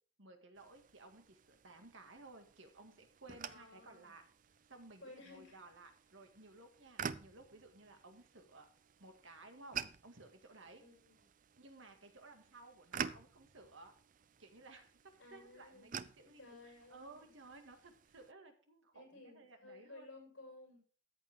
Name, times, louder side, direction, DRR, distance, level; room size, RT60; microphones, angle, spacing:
voice 1, 0.2-4.2 4.7-8.7 9.0-10.8 11.6-13.9 14.4-14.9 15.3-15.9 16.2-20.1, right 2 dB, 70° right, 5 dB, 2.1 m, -57 dB
sound 1, 0.6-18.3, right 7 dB, 40° right, 0.5 m, -50 dB
voice 2, 3.4-4.1 5.0-5.6 7.5-7.6 10.8-11.2 15.2-16.0 16.2-17.3 18.9-20.8, left 2 dB, 65° left, 0 dB, 6.5 m, -56 dB
14.0 x 8.1 x 3.6 m, 0.42 s
head